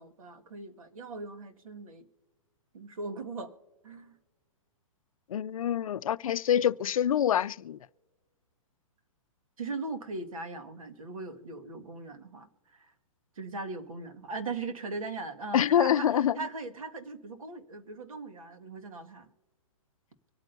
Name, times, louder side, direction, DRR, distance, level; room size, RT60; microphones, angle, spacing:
voice 1, 0.0-2.1 2.7-3.5 3.8-4.1 9.6-12.9 13.4-19.3, right 3 dB, 85° right, 1.8 m, -39 dB
voice 2, 5.3-7.8 15.5-16.4, left 10 dB, 85° left, 0.4 m, -26 dB
25.0 x 9.0 x 2.7 m
hypercardioid pair, 160°, 17 cm